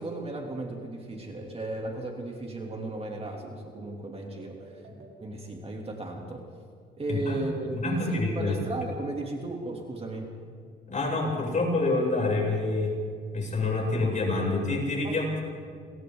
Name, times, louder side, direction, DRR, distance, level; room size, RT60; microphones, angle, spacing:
voice 1, 0.0-4.8 5.2-6.5 7.0-10.4 15.0-15.2, right 2 dB, 30° right, 0 dB, 3.0 m, -35 dB
sound 1, 1.2-5.1, right 5 dB, 85° right, 4.0 m, -50 dB
voice 2, 7.1-7.4 7.7-8.6 10.9-12.9 13.3-15.4, left 2 dB, 40° left, -2 dB, 7.8 m, -27 dB
29.0 x 23.0 x 4.0 m, 2.2 s
cardioid pair, 90°, 20 cm